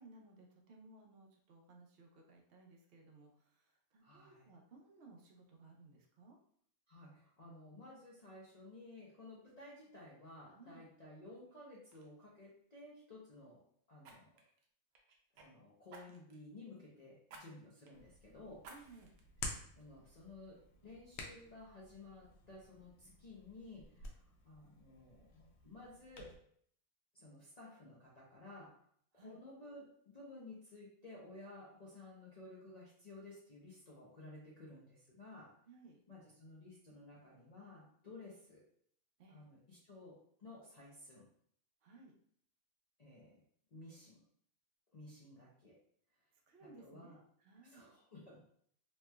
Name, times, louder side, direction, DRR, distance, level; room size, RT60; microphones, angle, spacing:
voice 1, 0.0-6.4 10.5-10.8 18.7-19.1 29.1-29.4 35.7-36.0 39.2-39.4 41.8-42.1 46.5-47.9, right 3 dB, 60° right, 1 dB, 0.6 m, -60 dB
voice 2, 4.0-4.5 6.9-14.4 15.3-18.6 19.8-26.3 27.1-28.8 29.1-35.5 36.1-38.7 39.3-41.3 43.0-43.4 43.7-44.2 44.9-45.8 46.6-47.2 47.6-48.5, left 2 dB, 55° left, -6 dB, 0.4 m, -55 dB
Fire, 11.3-11.5 11.9-12.1 14.0-15.5 15.9-16.4 17.3-17.4 17.9-18.0 18.6-19.2 19.7-19.8, right 3 dB, 80° right, 1.1 m, -57 dB
Hands, 17.9-26.4, left 2 dB, 80° left, 1.1 m, -52 dB
3.1 x 2.9 x 2.2 m, 0.63 s
omnidirectional pair, 1.6 m